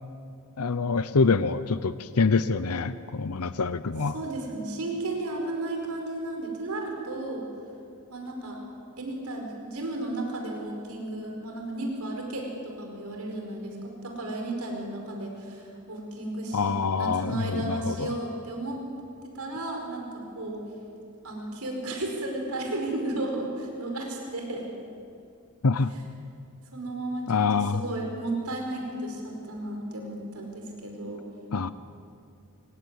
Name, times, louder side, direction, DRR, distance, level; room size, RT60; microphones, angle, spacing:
voice 1, 0.6-4.1 16.5-18.1 25.6-25.9 27.3-27.8 31.5-31.7, left 4 dB, 90° left, 14 dB, 0.7 m, -25 dB
voice 2, 4.1-7.5 8.1-8.6 9.0-18.8 19.2-20.7 21.2-24.7 26.7-31.2, right 2 dB, 85° right, 1 dB, 5.0 m, -34 dB
26.0 x 16.5 x 9.7 m, 2.5 s
head